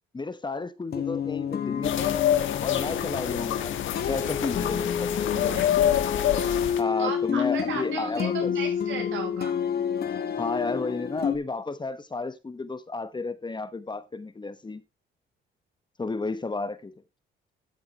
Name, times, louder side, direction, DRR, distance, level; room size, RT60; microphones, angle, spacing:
voice 1, 0.1-2.2 2.6-3.8 4.1-5.3 6.8-8.5 10.4-14.8 16.0-16.9, left 3 dB, 20° left, 1.2 m, -32 dB
sound 1, 0.9-11.4, left 8 dB, 50° left, 1.6 m, -29 dB
sound 2, 1.8-6.8, left 11 dB, 80° left, 1.4 m, -26 dB
voice 2, 5.3-5.9 7.0-9.6, right 5 dB, 75° right, 5.8 m, -35 dB
14.0 x 6.8 x 3.0 m
cardioid pair, 90°, 20 cm